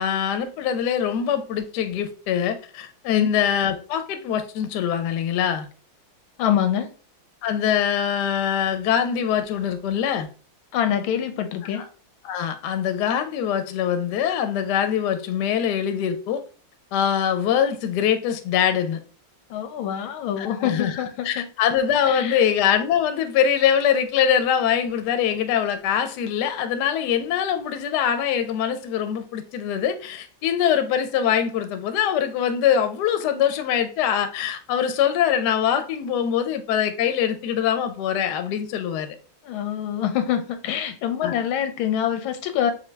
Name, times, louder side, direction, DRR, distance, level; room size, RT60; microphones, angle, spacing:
voice 1, 0.0-5.7 7.4-10.3 11.7-11.8 12.2-16.4 16.9-19.0 20.4-39.2 41.2-41.4, left 9 dB, 70° left, 1.0 m, -23 dB
voice 2, 6.4-6.9 10.7-11.8 19.5-21.5 22.0-22.4 39.4-42.7, left 9 dB, 85° left, 1.4 m, -25 dB
5.2 x 2.5 x 3.2 m
omnidirectional pair, 2.2 m